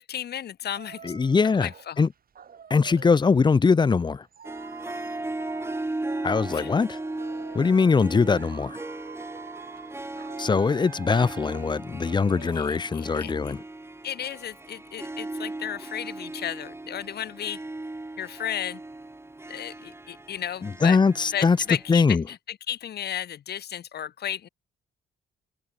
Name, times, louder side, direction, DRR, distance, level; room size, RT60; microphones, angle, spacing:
voice 1, 0.0-1.0 1.5-2.1 6.5-6.7 12.5-13.5 14.0-17.6 18.2-18.8 19.5-21.0 21.3-24.5, left 10 dB, 55° left, 1.1 m, -34 dB
sound 1, 0.7-3.2 3.9-13.3, right 7 dB, 45° right, 2.9 m, -47 dB
voice 2, 1.0-1.7 2.0-2.1 2.7-4.2 6.2-7.0 7.5-8.8 10.4-13.6 20.6-21.6 21.9-22.2, left 5 dB, 20° left, 0.6 m, -21 dB
Harp, 4.4-22.0, right 2 dB, 10° right, 1.8 m, -37 dB
cardioid pair, 90°, 20 cm